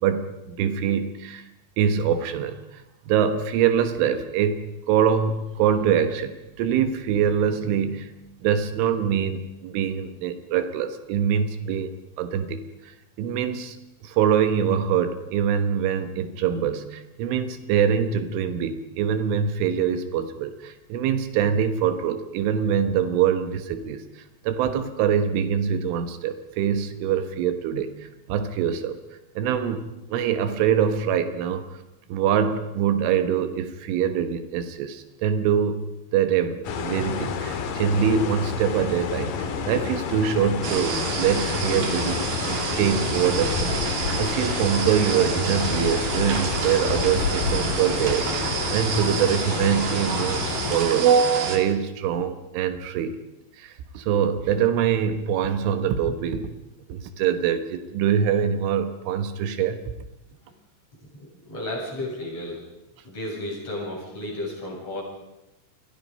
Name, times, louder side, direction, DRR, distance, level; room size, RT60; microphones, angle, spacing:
voice 1, 0.0-1.5 1.8-8.1 8.4-11.9 12.2-13.8 14.0-27.9 28.3-29.0 29.4-31.7 32.1-35.8 36.1-53.2 53.6-56.5 56.9-59.8, right 8 dB, 80° right, 9 dB, 3.8 m, -24 dB
sound 1, 36.6-50.8, left 6 dB, 55° left, 2.9 m, -29 dB
sound 2, 40.6-51.6, right 5 dB, 55° right, 4.1 m, -29 dB
voice 2, 61.1-62.6 63.0-65.0, left 1 dB, 30° left, -2 dB, 8.7 m, -33 dB
29.5 x 23.0 x 5.4 m, 0.94 s
omnidirectional pair, 5.6 m